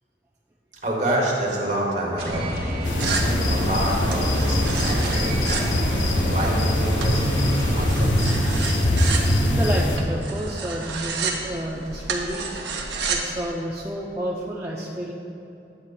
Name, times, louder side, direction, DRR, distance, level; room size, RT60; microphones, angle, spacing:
voice 1, 0.8-8.3, right 1 dB, 40° right, -3 dB, 1.3 m, -28 dB
sound 1, 2.2-8.0, equal, 55° right, 1.5 m, -27 dB
sound 2, 2.8-10.0, left 1 dB, 85° left, 0.8 m, -23 dB
sound 3, 3.0-13.3, right 4 dB, 70° right, 0.8 m, -32 dB
voice 2, 9.5-12.5 13.1-15.1, right 1 dB, 15° right, -5 dB, 0.4 m, -30 dB
9.8 x 8.1 x 2.2 m, 2.9 s
head